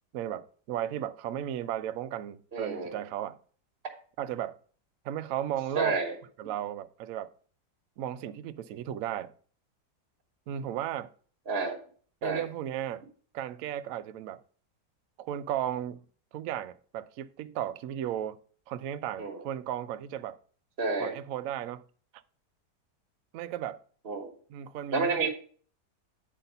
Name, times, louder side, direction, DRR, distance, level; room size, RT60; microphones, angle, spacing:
voice 1, 0.1-3.4 4.2-4.6 5.0-6.0 6.4-7.3 8.0-9.3 10.5-11.1 12.2-13.1 13.3-14.4 15.2-16.0 16.3-18.4 18.7-20.4 21.0-21.8 23.3-23.8 24.5-25.3, right 11 dB, 70° right, 0.8 m, -35 dB
voice 2, 2.5-2.9 5.7-6.1 11.5-11.8 12.2-12.4 19.2-19.4 20.8-21.1 24.0-24.3 24.9-25.3, right 4 dB, 35° right, 1.4 m, -29 dB
8.8 x 4.0 x 5.4 m
omnidirectional pair, 1.9 m